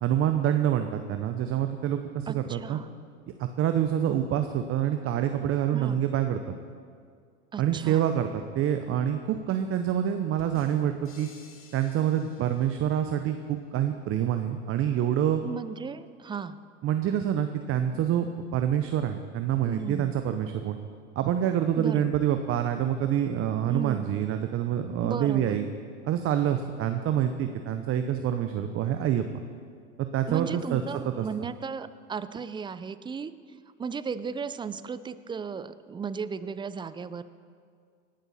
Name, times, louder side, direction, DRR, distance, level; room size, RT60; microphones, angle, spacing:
voice 1, 0.0-2.8 3.4-6.4 7.6-11.3 11.7-15.4 16.8-20.8 21.2-25.6 26.0-29.3 30.0-31.3, right 10 dB, 40° right, 7 dB, 0.8 m, -27 dB
voice 2, 2.3-2.9 5.7-6.0 7.5-8.1 15.4-16.6 19.7-20.1 21.8-22.1 23.7-24.1 25.0-25.6 30.3-33.3 33.8-37.2, right 6 dB, 15° right, 14 dB, 0.4 m, -35 dB
sound 1, 10.4-13.2, left 4 dB, 35° left, 2.5 m, -53 dB
18.5 x 11.5 x 4.2 m, 2.1 s
hypercardioid pair, 90°, 36 cm